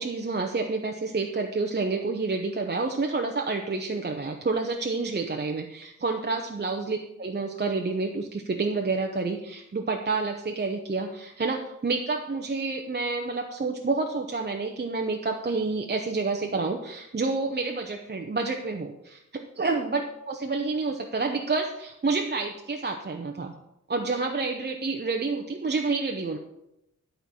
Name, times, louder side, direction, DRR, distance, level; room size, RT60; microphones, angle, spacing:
voice 1, 0.0-20.0 20.3-23.5 23.9-26.4, right 3 dB, 35° right, 3 dB, 0.8 m, -29 dB
11.5 x 4.5 x 6.9 m, 0.85 s
wide cardioid pair, 120°, 32 cm